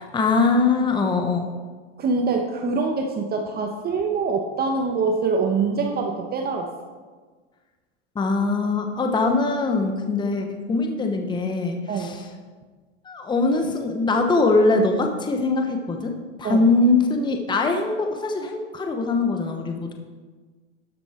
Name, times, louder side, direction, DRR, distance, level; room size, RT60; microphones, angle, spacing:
voice 1, 0.1-1.5 8.1-12.3 13.0-19.9, left 3 dB, 15° left, 4 dB, 1.0 m, -22 dB
voice 2, 2.0-6.7 11.9-12.2 16.4-16.6, right 4 dB, 25° right, 4 dB, 1.0 m, -24 dB
12.5 x 7.9 x 4.4 m, 1.4 s
supercardioid pair, 120°, 35 cm